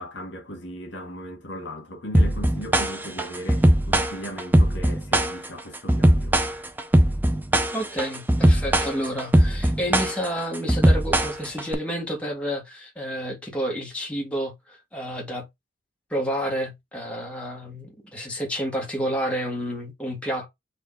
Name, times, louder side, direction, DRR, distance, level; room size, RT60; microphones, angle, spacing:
voice 1, 0.0-6.4, equal, 75° left, 1.5 m, -37 dB
sound 1, 2.1-11.7, right 1 dB, 10° right, 0.5 m, -20 dB
voice 2, 7.7-15.5 16.1-20.5, equal, 5° left, 1.4 m, -30 dB
4.3 x 2.6 x 3.6 m
head